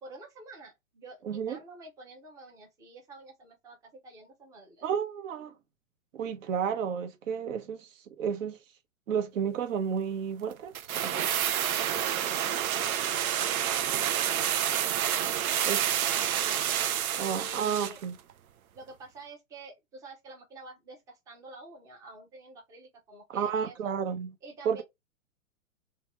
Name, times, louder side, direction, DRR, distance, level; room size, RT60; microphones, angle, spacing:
voice 1, 0.0-4.9 15.4-16.6 17.2-18.0 18.7-23.9 24.4-24.8, right 2 dB, 10° right, 0.5 m, -48 dB
voice 2, 1.2-1.6 4.8-5.5 6.1-7.9 8.2-8.6 9.1-10.7 11.0-11.3 15.7-15.8 17.2-18.1 23.3-24.3 24.6-24.8, right 7 dB, 65° right, 0.9 m, -31 dB
sound 1, 10.7-18.0 18.3-18.4, right 10 dB, 85° right, 0.6 m, -28 dB
2.8 x 2.3 x 2.9 m
hypercardioid pair, 130°, 41 cm